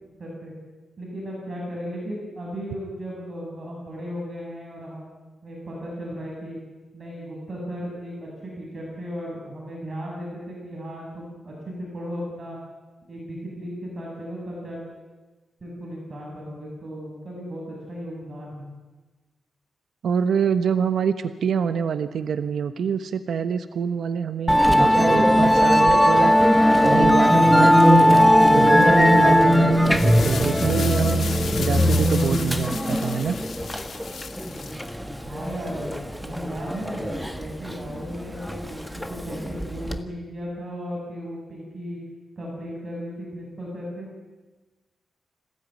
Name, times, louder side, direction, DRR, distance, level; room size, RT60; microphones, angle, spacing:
voice 1, 0.2-0.5 1.0-5.2 5.4-6.6 6.9-12.6 13.1-14.8 15.6-18.7 35.2-36.0 36.2-42.0 42.4-44.1, equal, 35° right, -3 dB, 7.1 m, -35 dB
voice 2, 20.0-26.4 26.8-28.1 28.5-31.3 31.6-33.4, right 7 dB, 80° right, 10 dB, 1.1 m, -26 dB
Musical instrument, 24.5-40.0, equal, ahead, 1.5 m, -18 dB
sound 1, 29.7-34.9, left 6 dB, 65° left, 1.8 m, -35 dB
26.5 x 17.0 x 9.5 m, 1.2 s
wide cardioid pair, 135°, 0 cm